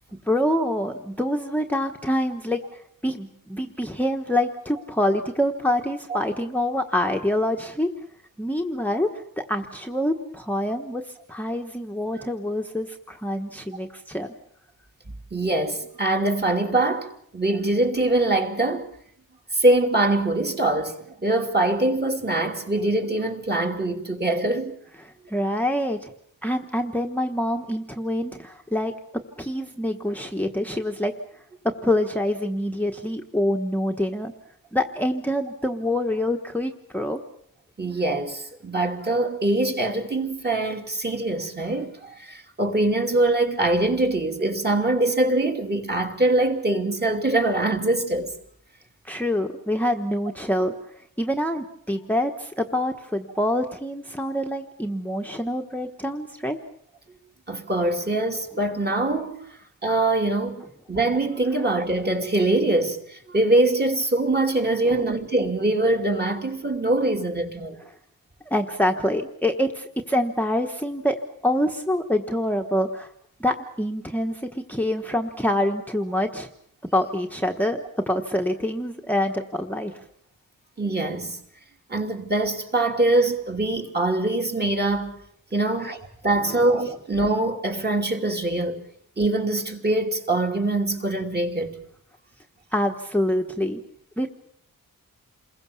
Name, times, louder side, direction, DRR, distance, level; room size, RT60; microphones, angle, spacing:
voice 1, 0.3-7.9 8.4-14.3 25.0-26.1 26.4-28.9 29.4-34.3 34.7-37.2 49.0-56.6 64.8-65.0 67.9-68.0 68.5-71.2 71.4-73.1 73.4-76.5 76.8-79.9 86.5-86.6 92.7-93.8 94.2-94.3, left 1 dB, 5° left, 1.2 m, -26 dB
voice 2, 15.3-17.1 17.3-18.9 19.5-21.0 21.2-24.8 37.8-48.3 57.5-59.4 59.8-67.8 80.8-81.4 81.9-85.2 85.5-86.0 86.2-88.8 89.2-91.8, right 2 dB, 30° right, 3.0 m, -23 dB
28.5 x 21.5 x 7.1 m
wide cardioid pair, 180°, 35 cm